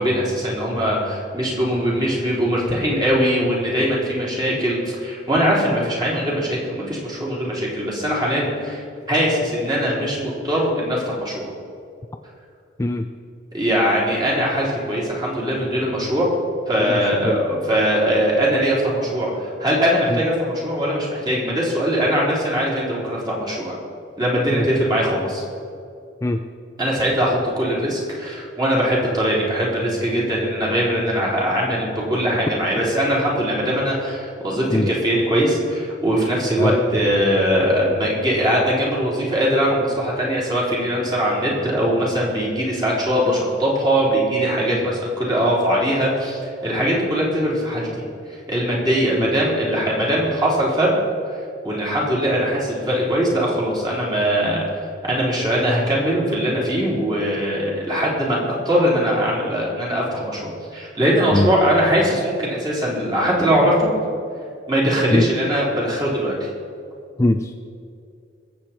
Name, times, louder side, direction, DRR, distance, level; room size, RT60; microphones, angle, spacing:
voice 1, 0.0-11.5 13.5-16.3 16.7-23.8 24.2-25.4 26.8-48.0 48.5-50.9 51.6-54.8 55.0-58.4 58.7-63.9 64.7-66.5, equal, 25° right, -5 dB, 3.7 m, -21 dB
voice 2, 17.0-17.4 20.1-20.2 24.5-24.6 26.2-26.4 34.7-34.9 36.6-36.8 49.2-49.3 61.3-61.5 65.1-65.2 67.2-67.5, left 1 dB, 15° left, 6 dB, 0.4 m, -21 dB
22.5 x 8.0 x 4.4 m, 2.4 s
head